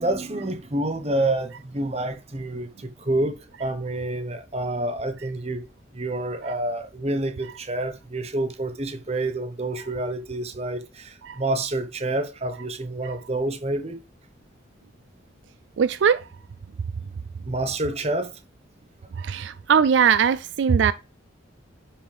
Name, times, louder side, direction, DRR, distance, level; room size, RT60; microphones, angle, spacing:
voice 1, 0.0-5.6 5.9-14.0 17.5-18.3 19.2-19.3, right 2 dB, 30° right, 1.1 m, -28 dB
voice 2, 15.8-16.3 19.2-20.9, right 7 dB, 70° right, 0.4 m, -21 dB
9.9 x 5.9 x 3.4 m
head